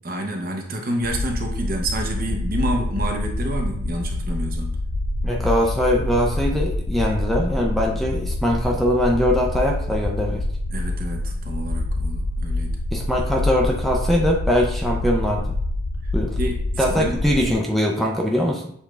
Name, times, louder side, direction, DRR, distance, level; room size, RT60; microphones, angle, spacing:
voice 1, 0.0-4.8 10.7-12.8 16.0-17.2, right 1 dB, 45° right, 2 dB, 0.8 m, -29 dB
sound 1, 1.0-17.5, left 2 dB, 70° left, 0.4 m, -26 dB
voice 2, 5.2-10.4 12.9-15.4 16.1-16.4 16.8-18.7, equal, ahead, 0 dB, 0.4 m, -22 dB
7.0 x 2.4 x 3.2 m, 0.67 s
head